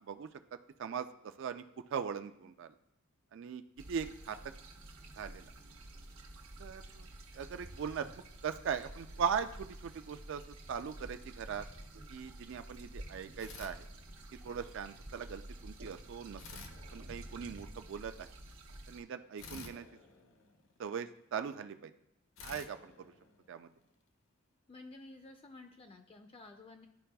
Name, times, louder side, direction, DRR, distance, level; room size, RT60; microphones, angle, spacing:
voice 1, 1.9-2.7 3.3-3.6 3.9-4.4 5.2-5.5 6.6-7.1 7.3-8.1 8.4-10.4 10.7-11.6 12.1-13.8 14.4-16.4 16.9-18.3 18.9-19.8 20.8-21.9 22.4-23.1 23.5-23.7, right 7 dB, 60° right, 9 dB, 0.4 m, -39 dB
sound 1, 3.8-19.0, right 1 dB, 80° right, 1.0 m, -50 dB
sound 2, 13.4-14.5 16.4-17.8 19.4-21.1 22.4-23.9, left 4 dB, 70° left, 0.8 m, -52 dB
voice 2, 24.7-26.9, left 2 dB, 25° left, 5 dB, 0.4 m, -52 dB
11.5 x 4.6 x 2.2 m, 0.86 s
head